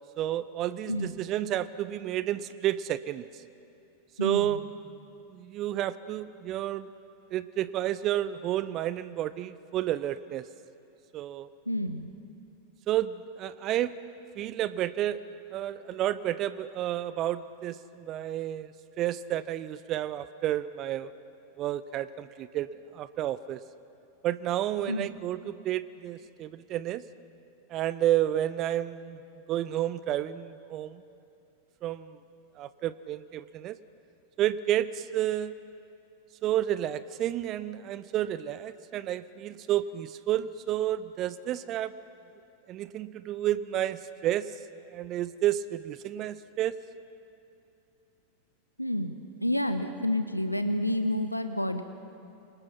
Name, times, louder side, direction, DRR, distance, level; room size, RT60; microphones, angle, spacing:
voice 1, 0.2-3.2 4.2-4.6 5.3-6.9 7.3-10.4 11.1-11.5 12.9-14.0 14.4-15.2 15.5-18.7 19.0-21.1 21.6-23.6 24.2-27.0 27.7-29.2 29.5-31.0 31.8-32.1 32.6-33.8 34.4-35.5 36.4-41.9 42.7-44.5 44.9-46.7, right 12 dB, 35° right, 16 dB, 0.7 m, -30 dB
voice 2, 4.2-4.7 11.7-12.1 24.9-25.1 48.8-51.8, left 1 dB, 90° left, 8 dB, 1.1 m, -29 dB
27.5 x 25.0 x 5.9 m, 2.8 s
figure-of-eight pair, 90°, 0 cm